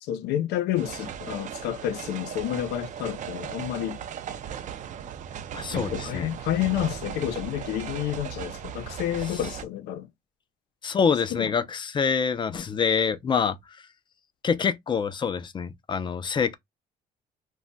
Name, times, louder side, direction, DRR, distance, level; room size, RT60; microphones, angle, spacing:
voice 1, 0.0-4.0 5.7-10.1 11.3-11.5, left 12 dB, 80° left, 0.5 m, -30 dB
sound 1, 0.8-9.7, right 8 dB, 45° right, 0.4 m, -37 dB
voice 2, 5.5-6.3 10.8-13.6 14.4-16.5, left 6 dB, 30° left, 0.4 m, -26 dB
2.2 x 2.1 x 3.8 m
cardioid pair, 110°, 17 cm